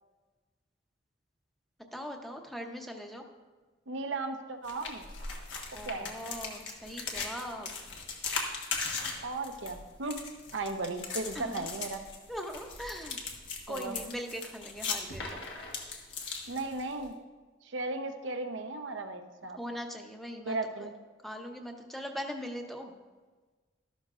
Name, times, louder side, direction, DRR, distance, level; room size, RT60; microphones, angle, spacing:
voice 1, 1.9-3.3 5.7-7.7 11.3-11.7 12.3-13.3 13.7-15.4 19.5-20.9 21.2-22.9, equal, ahead, 3 dB, 0.8 m, -40 dB
voice 2, 3.9-5.0 5.8-6.1 9.2-10.2 10.5-12.0 13.7-13.9 16.5-17.1 17.6-19.6 20.5-20.9, right 2 dB, 85° right, 6 dB, 0.8 m, -36 dB
sound 1, 4.6-17.1, left 4 dB, 75° left, 1.5 m, -39 dB
13.0 x 12.0 x 2.5 m, 1.3 s
head